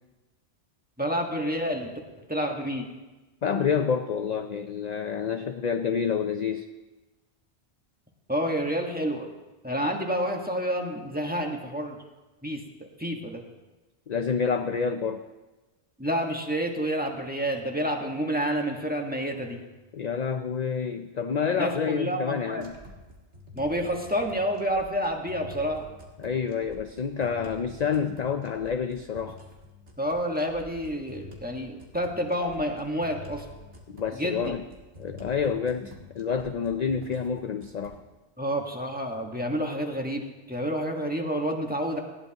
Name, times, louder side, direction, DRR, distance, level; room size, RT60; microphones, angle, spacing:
voice 1, 1.0-1.9 2.3-2.9 8.3-9.3 9.6-12.0 12.4-13.4 16.0-19.6 21.6-22.6 23.5-25.8 30.0-33.4 34.1-34.5 38.4-42.0, equal, 10° right, 1 dB, 1.4 m, -29 dB
voice 2, 3.4-6.7 14.1-15.3 19.9-22.7 26.2-29.4 33.9-34.6 35.0-38.0, left 6 dB, 50° left, 7 dB, 0.6 m, -28 dB
sound 1, 22.6-38.0, left 2 dB, 75° right, 2.5 m, -47 dB
19.5 x 16.0 x 2.9 m, 1.1 s
omnidirectional pair, 1.2 m